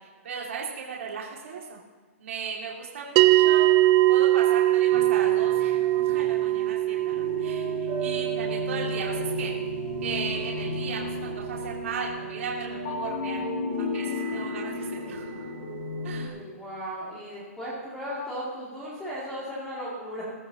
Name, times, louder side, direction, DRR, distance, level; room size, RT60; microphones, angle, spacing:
voice 1, 0.2-1.8 2.2-3.7 4.1-9.5 10.0-13.4 13.8-15.4 16.0-16.4, right 5 dB, 60° right, -3 dB, 2.3 m, -36 dB
sound 1, 3.2-13.7, right 16 dB, 25° right, 0.4 m, -24 dB
sound 2, 4.9-16.3, left 2 dB, 45° left, 3.7 m, -34 dB
voice 2, 16.2-20.2, equal, 5° left, -8 dB, 2.5 m, -36 dB
21.0 x 13.0 x 2.9 m, 1.5 s
hypercardioid pair, 165°, 8 cm